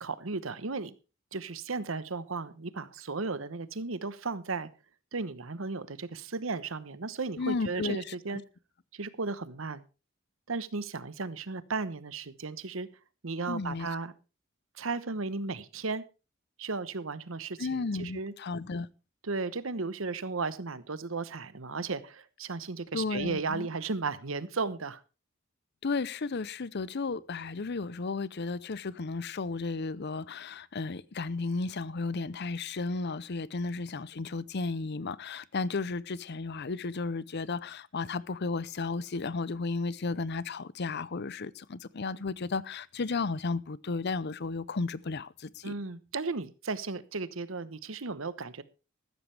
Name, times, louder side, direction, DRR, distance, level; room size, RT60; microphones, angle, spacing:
voice 1, 0.0-0.9 1.3-4.7 5.1-8.4 8.9-9.8 10.5-12.9 13.2-14.1 14.7-16.0 16.6-18.3 19.2-25.0 45.6-48.6, right 4 dB, 80° right, 1.0 m, -35 dB
voice 2, 7.4-8.0 13.5-13.9 17.6-18.9 22.9-23.7 25.8-45.7, left 4 dB, 55° left, 0.7 m, -34 dB
14.5 x 13.5 x 3.4 m
head